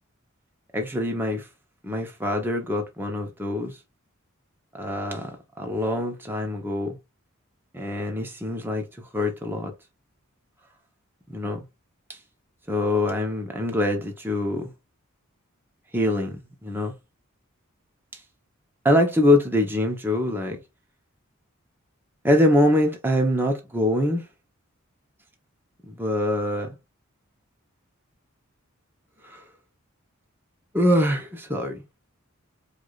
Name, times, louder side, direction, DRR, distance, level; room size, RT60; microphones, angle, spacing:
voice 1, 0.7-1.5 1.8-3.8 4.7-7.0 7.7-9.7 11.3-11.6 12.7-14.7 15.9-16.9 18.8-20.6 22.2-24.3 25.8-26.8 29.2-29.4 30.7-31.8, left 1 dB, 10° right, 0.9 m, -24 dB
4.8 x 2.5 x 2.4 m
head